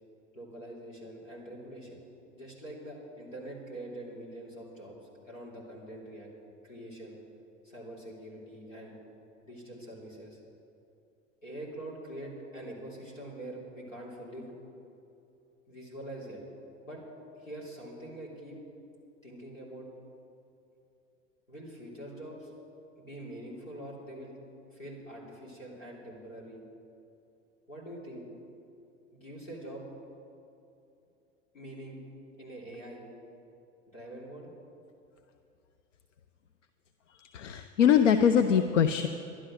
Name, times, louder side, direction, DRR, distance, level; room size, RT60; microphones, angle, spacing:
voice 1, 0.3-2.0 2.3-4.9 5.3-6.3 6.6-7.2 7.6-9.0 9.4-10.4 11.4-14.5 15.7-16.4 16.8-17.0 17.3-18.6 19.2-19.9 21.5-22.5 23.0-24.4 24.7-26.6 27.7-28.3 29.1-29.8 31.5-32.0 32.4-33.1 33.9-34.5, right 1 dB, 90° left, -4 dB, 3.4 m, -44 dB
voice 2, 37.2-39.1, left 8 dB, 70° left, 8 dB, 0.7 m, -23 dB
12.0 x 11.5 x 6.3 m, 2.7 s
figure-of-eight pair, 80°, 38 cm